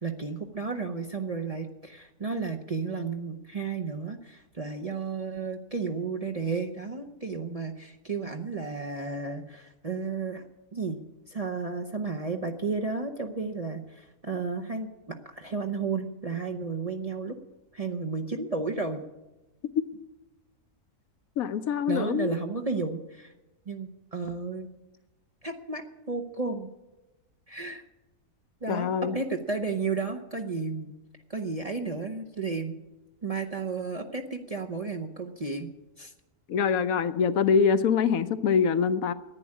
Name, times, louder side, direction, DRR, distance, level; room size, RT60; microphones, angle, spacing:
voice 1, 0.0-10.4 10.7-11.0 11.3-17.4 17.7-19.0 21.9-23.3 23.7-24.7 25.4-26.7 27.5-27.8 28.6-30.9 31.3-32.7 33.2-35.7 36.0-36.1, right 4 dB, 35° right, 3 dB, 0.6 m, -33 dB
voice 2, 21.4-22.4 28.7-29.2 36.5-39.1, left 6 dB, 75° left, 12 dB, 1.1 m, -24 dB
11.0 x 9.8 x 9.8 m, 1.0 s
omnidirectional pair, 1.5 m